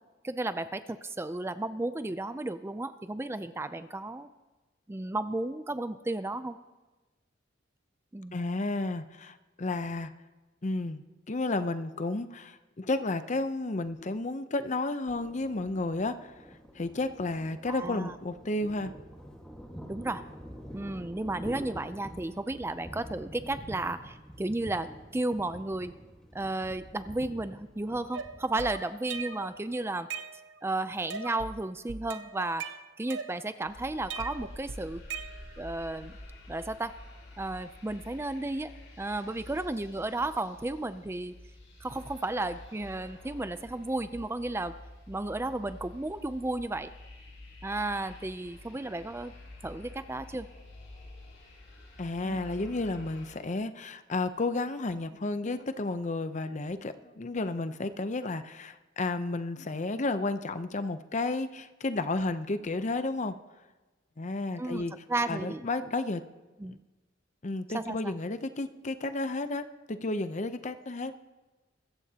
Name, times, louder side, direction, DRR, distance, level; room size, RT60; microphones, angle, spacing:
voice 1, 0.2-4.3 4.9-6.6 8.1-8.4 17.7-18.1 19.9-20.2 20.7-25.9 26.3-30.1 30.6-32.6 33.0-35.0 35.6-36.1 36.5-36.9 37.4-38.7 39.0-41.4 41.8-44.7 45.1-46.9 47.6-49.3 49.6-50.5 52.2-52.4 64.6-64.8 65.1-65.6 66.6-66.8 67.7-68.1, right 2 dB, 15° right, 12 dB, 0.4 m, -33 dB
voice 2, 8.3-10.1 10.6-16.2 16.7-18.9 52.0-63.4 64.2-64.9 65.3-66.2 66.7-66.8 67.4-71.1, left 2 dB, 40° left, 10 dB, 0.7 m, -32 dB
Thunder, 15.1-29.9, equal, 5° left, 1.6 m, -47 dB
sound 1, 28.1-29.6 29.9-30.7 31.1-31.6 31.9-33.7 34.1-35.7, right 5 dB, 75° right, 0.8 m, -40 dB
sound 2, 33.7-53.3, left 1 dB, 75° left, 5.3 m, -49 dB
23.5 x 14.0 x 2.9 m, 1.2 s
head